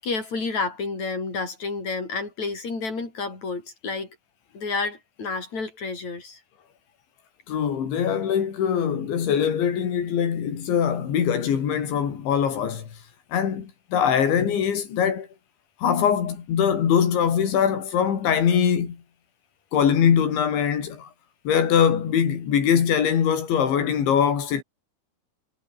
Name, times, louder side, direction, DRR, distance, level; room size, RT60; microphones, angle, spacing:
voice 1, 0.0-4.2 4.5-6.4, left 4 dB, 40° left, 8.9 m, -30 dB
voice 2, 7.5-13.0 13.3-15.3 15.8-19.0 19.7-21.1 21.5-24.6, left 8 dB, 85° left, 6.0 m, -22 dB
omnidirectional pair, 5.1 m